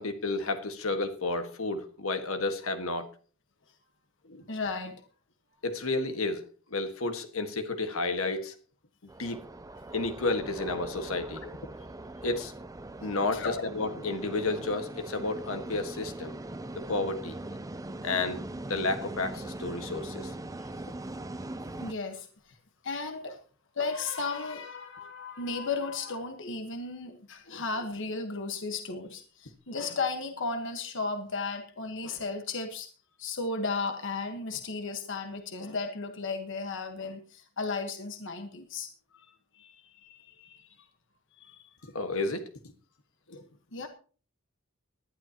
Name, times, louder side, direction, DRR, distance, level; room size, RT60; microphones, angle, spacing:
voice 1, 0.0-3.1 4.2-4.4 5.6-8.5 9.2-9.4 9.9-11.4 12.2-12.5 13.0-16.3 16.7-17.4 18.0-20.3 27.5-27.6 41.8-42.5 43.3-43.4, left 3 dB, 80° left, 1.6 m, -31 dB
voice 2, 4.5-5.1 11.4-11.5 13.3-13.5 20.6-20.7 21.8-22.5 22.8-23.4 23.7-32.9 33.2-40.9 41.4-41.7 43.7-43.9, left 4 dB, 65° left, 1.3 m, -35 dB
sound 1, 9.1-21.9, right 2 dB, 15° right, 0.6 m, -41 dB
19.5 x 11.5 x 2.9 m
head